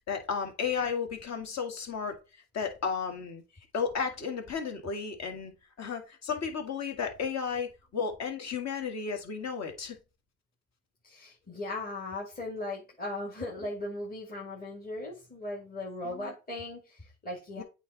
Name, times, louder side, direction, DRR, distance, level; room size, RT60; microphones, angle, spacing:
voice 1, 0.1-2.2 2.5-3.4 3.7-5.5 5.8-10.0 16.0-16.3 17.6-17.7, left 6 dB, 50° left, 1.9 m, -33 dB
voice 2, 11.0-17.6, left 2 dB, 25° left, 2.0 m, -38 dB
8.3 x 3.4 x 4.0 m
supercardioid pair, 75°, 35 cm